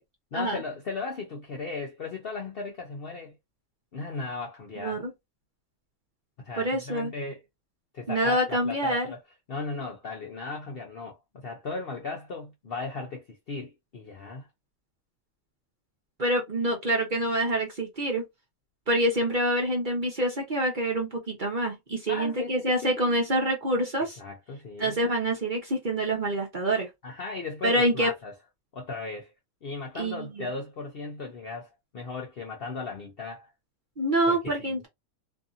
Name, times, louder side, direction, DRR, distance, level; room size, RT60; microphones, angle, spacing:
voice 1, 0.3-3.4 3.9-5.0 6.4-7.4 7.9-9.2 9.5-14.5 22.1-22.7 23.0-23.1 24.2-25.0 27.0-28.3 28.7-29.3 29.6-33.5 34.3-34.8, left 4 dB, 55° left, 0.6 m, -37 dB
voice 2, 4.8-5.1 6.6-7.1 8.1-9.1 16.2-18.2 18.9-24.2 24.8-26.9 27.6-28.1 29.9-30.5 34.0-34.9, right 1 dB, 40° right, 0.8 m, -26 dB
2.7 x 2.6 x 2.5 m
omnidirectional pair, 1.6 m